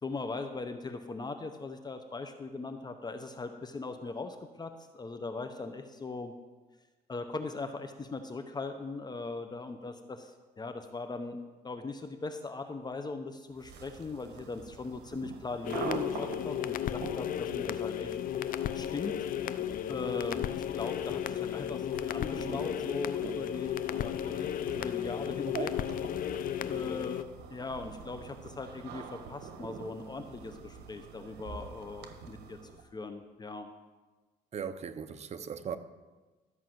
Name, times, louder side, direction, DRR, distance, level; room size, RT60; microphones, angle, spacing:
voice 1, 0.0-6.3 7.1-18.2 18.7-19.1 19.9-25.7 26.6-32.6 32.9-33.7, left 3 dB, 25° left, 7 dB, 0.8 m, -39 dB
sound 1, 13.6-32.9, right 5 dB, 80° right, 1.3 m, -45 dB
sound 2, 15.6-27.2, left 11 dB, 55° left, 0.5 m, -34 dB
voice 2, 34.5-35.8, right 7 dB, 40° right, 10 dB, 0.8 m, -38 dB
13.0 x 5.5 x 7.7 m, 1.3 s
cardioid pair, 120°, 17 cm